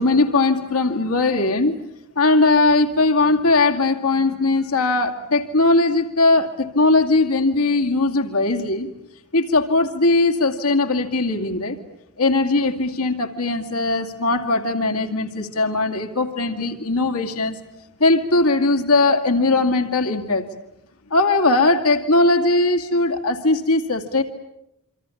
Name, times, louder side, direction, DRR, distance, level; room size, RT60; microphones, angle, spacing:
voice 1, 0.0-1.7 2.2-8.9 9.3-11.8 12.2-17.5 18.0-20.4 21.1-24.2, left 2 dB, 75° left, 5 dB, 2.4 m, -19 dB
27.0 x 25.5 x 8.5 m, 0.85 s
head